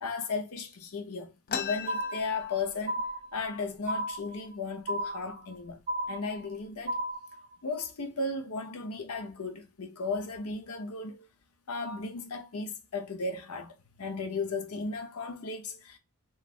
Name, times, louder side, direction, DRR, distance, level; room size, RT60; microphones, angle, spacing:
voice 1, 0.0-3.1 3.3-5.8 6.1-7.0 7.6-11.3 11.7-16.0, left 3 dB, 75° left, 0.7 m, -35 dB
sound 1, 1.5-3.1 3.4-3.5 3.8-4.4 5.0-5.2 5.9-6.0 6.5-7.0, left 7 dB, 40° left, 0.3 m, -38 dB
sound 2, 1.9-2.5 2.9-3.5 3.9-4.5 4.9-5.5 5.9-6.5 6.9-7.5, right 1 dB, 25° right, 0.6 m, -34 dB
3.1 x 2.3 x 2.4 m
head